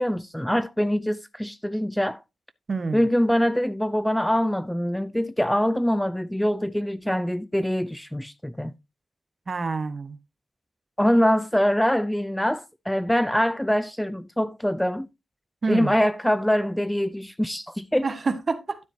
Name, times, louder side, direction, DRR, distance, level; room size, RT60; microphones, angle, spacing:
voice 1, 0.0-2.2 2.9-8.7 11.0-15.1 15.7-18.1, equal, 5° left, 0.5 m, -24 dB
voice 2, 2.7-3.1 9.5-10.2 15.6-15.9 18.0-18.8, right 4 dB, 40° right, 1.2 m, -27 dB
12.5 x 7.3 x 2.7 m
cardioid pair, 85°, 0 cm